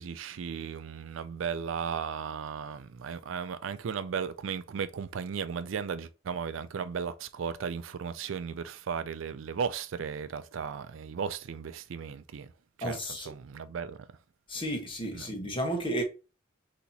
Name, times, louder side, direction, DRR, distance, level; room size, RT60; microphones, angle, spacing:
voice 1, 0.0-12.5 12.8-14.1 15.1-15.3, right 6 dB, 75° right, 0.4 m, -35 dB
voice 2, 12.8-13.3 14.5-16.0, equal, 25° left, 1.1 m, -32 dB
4.2 x 2.9 x 4.1 m
head